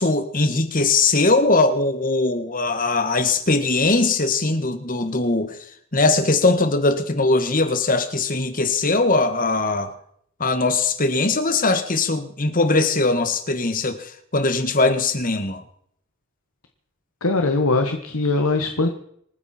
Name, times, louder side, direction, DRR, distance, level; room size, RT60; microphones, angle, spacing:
voice 1, 0.0-5.6 5.9-9.9 10.4-15.6, left 3 dB, 40° left, 1.7 m, -20 dB
voice 2, 17.2-18.9, left 3 dB, 85° left, 1.5 m, -21 dB
27.0 x 9.7 x 4.4 m
head